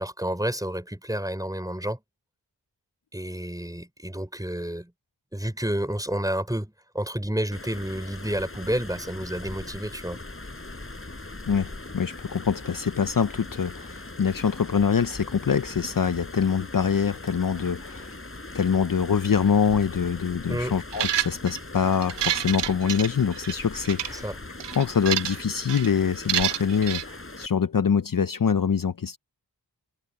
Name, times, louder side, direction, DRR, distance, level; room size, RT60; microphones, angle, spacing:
voice 1, 0.0-2.0 3.1-4.9 5.3-10.2 20.5-20.8 24.1-24.4, right 1 dB, 10° right, 5.9 m, -30 dB
sound 1, 7.5-27.5, left 2 dB, 30° left, 6.0 m, -40 dB
voice 2, 11.5-18.1 18.5-24.4 24.8-29.2, left 6 dB, 50° left, 0.9 m, -24 dB
sound 2, 20.9-21.6 22.0-23.5 23.9-24.1 24.6-25.4 25.7-25.9 26.3-27.0, right 11 dB, 80° right, 0.6 m, -28 dB
cardioid pair, 55°, 42 cm